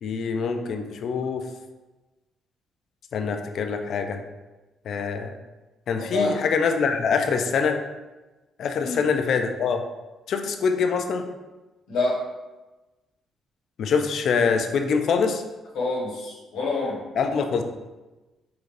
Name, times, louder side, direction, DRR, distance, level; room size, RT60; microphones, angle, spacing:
voice 1, 0.0-1.4 3.1-4.2 4.9-5.3 5.9-7.8 8.6-9.8 10.3-11.2 13.8-15.4 17.2-17.6, left 5 dB, 65° left, 6 dB, 0.4 m, -24 dB
voice 2, 6.0-6.4 8.8-9.0 11.9-12.2 15.7-17.0, left 2 dB, 90° left, -4 dB, 1.1 m, -26 dB
3.8 x 3.1 x 2.5 m, 1.1 s
cardioid pair, 90°, 0 cm